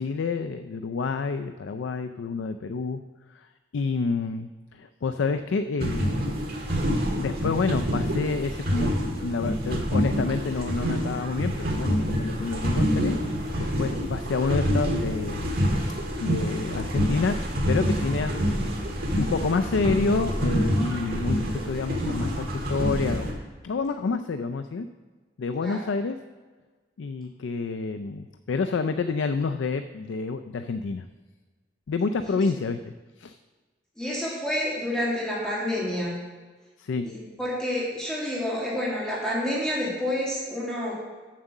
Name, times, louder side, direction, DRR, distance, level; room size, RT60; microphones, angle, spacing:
voice 1, 0.0-3.0 3.3-3.5 3.7-6.3 7.2-9.0 9.2-13.2 13.6-15.6 16.2-18.4 19.2-24.9 25.4-26.2 27.0-31.0 31.9-33.4 36.8-37.1, left 4 dB, 85° left, 9 dB, 0.4 m, -28 dB
sound 1, 5.8-23.3, equal, 55° right, 1.7 m, -27 dB
voice 2, 34.0-36.2 37.0-41.0, left 1 dB, 5° left, -7 dB, 1.9 m, -29 dB
7.5 x 6.5 x 7.1 m, 1.4 s
head